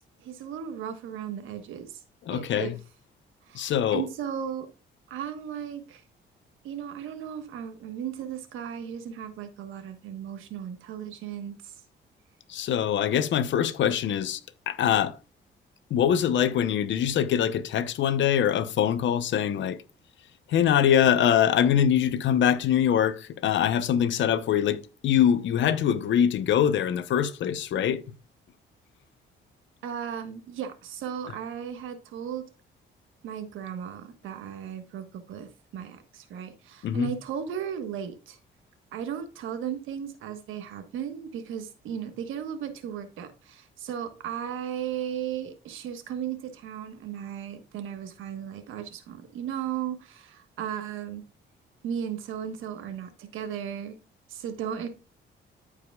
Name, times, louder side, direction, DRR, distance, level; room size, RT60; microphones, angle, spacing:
voice 1, 0.2-2.0 2.3-2.7 3.5-4.7 5.1-6.0 6.6-11.7 29.8-32.4 33.2-38.4 38.9-51.2 51.8-54.0 54.3-54.9, right 9 dB, 90° right, 1.3 m, -36 dB
voice 2, 2.3-2.7 3.5-4.1 12.5-14.4 14.7-15.1 15.9-19.8 20.5-28.0 36.8-37.1, left 9 dB, 70° left, 0.9 m, -23 dB
14.0 x 4.9 x 2.3 m
cardioid pair, 90°, 20 cm